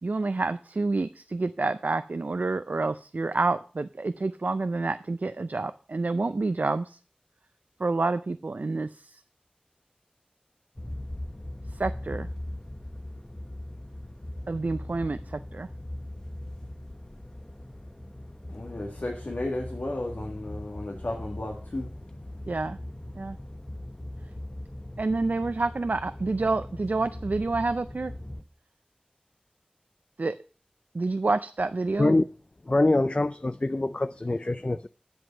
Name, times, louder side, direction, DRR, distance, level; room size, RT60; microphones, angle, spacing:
voice 1, 0.0-7.0 7.8-9.2 11.7-12.3 14.5-15.7 22.5-22.8 23.1-23.4 25.0-28.1 30.2-30.4 30.9-32.2, right 3 dB, 75° right, 0.4 m, -28 dB
sound 1, 10.8-28.4, left 1 dB, 25° left, 0.9 m, -40 dB
voice 2, 18.5-21.9, left 1 dB, 85° left, 1.7 m, -34 dB
voice 3, 32.7-34.9, left 2 dB, 40° left, 0.4 m, -24 dB
8.0 x 7.8 x 5.1 m
wide cardioid pair, 40°, 3 cm